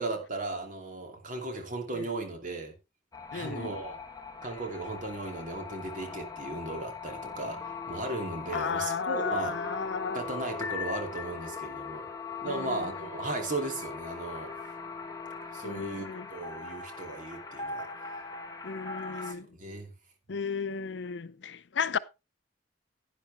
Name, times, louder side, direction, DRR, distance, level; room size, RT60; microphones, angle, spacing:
voice 1, 0.0-2.7 3.3-4.0 4.4-9.6 10.1-12.1 12.4-14.6 15.5-17.9 19.1-19.9, right 2 dB, 45° right, 2.6 m, -36 dB
sound 1, 3.1-19.3, left 4 dB, 20° left, 1.3 m, -40 dB
voice 2, 3.3-3.7 8.5-10.2 12.5-12.8 15.6-16.3 18.6-19.5 20.3-22.0, left 5 dB, 75° left, 0.6 m, -34 dB
11.0 x 10.0 x 3.3 m
head